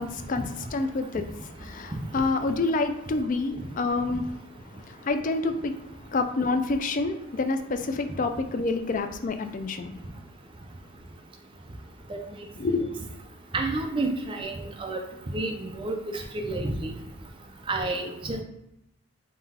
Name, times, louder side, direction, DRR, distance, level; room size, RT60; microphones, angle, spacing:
voice 1, 0.0-4.4 4.7-5.8 6.1-9.9 12.6-13.1, left 3 dB, 35° left, 7 dB, 0.3 m, -28 dB
voice 2, 13.5-15.0 15.3-16.9 17.7-18.4, right 2 dB, 25° right, 2 dB, 0.5 m, -30 dB
3.8 x 2.3 x 4.1 m, 0.86 s
head